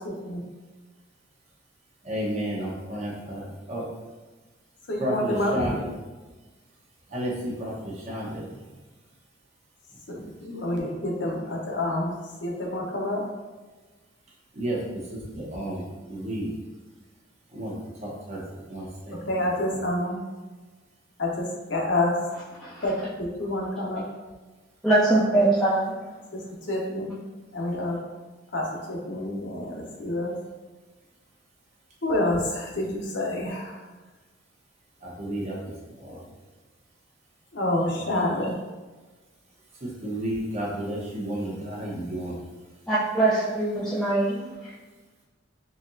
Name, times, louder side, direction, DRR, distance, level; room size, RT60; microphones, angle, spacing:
voice 1, 0.0-0.4 4.9-5.8 10.1-12.1 12.4-13.2 19.3-20.2 21.2-22.2 22.8-24.0 25.3-25.5 26.3-26.4 26.7-27.1 27.5-28.0 28.5-30.3 32.0-33.8 37.5-38.6, left 1 dB, 70° left, -1 dB, 0.8 m, -28 dB
voice 2, 2.0-3.9 5.0-5.9 7.1-8.6 10.2-10.3 14.5-14.8 15.1-15.8 16.1-16.5 17.5-17.7 18.0-18.4 18.7-19.1 35.0-36.2 39.8-42.3, right 1 dB, 40° right, -4 dB, 0.9 m, -32 dB
voice 3, 24.8-26.0 42.9-44.7, right 2 dB, 5° left, -9 dB, 0.4 m, -23 dB
4.1 x 2.9 x 2.6 m, 1.3 s
head